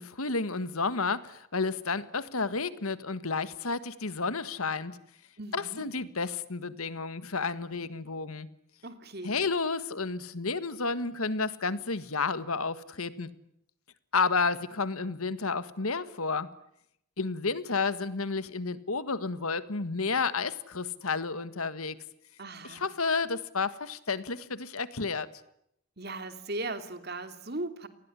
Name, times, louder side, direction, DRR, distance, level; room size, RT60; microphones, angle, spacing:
voice 1, 0.0-5.0 5.5-8.5 9.2-13.3 14.1-16.5 17.2-22.0 22.6-25.3, left 4 dB, 85° left, 14 dB, 1.7 m, -31 dB
voice 2, 5.4-5.9 8.8-9.4 22.4-22.9 26.0-27.9, right 2 dB, 45° right, 9 dB, 2.7 m, -38 dB
29.0 x 20.0 x 9.9 m, 0.76 s
head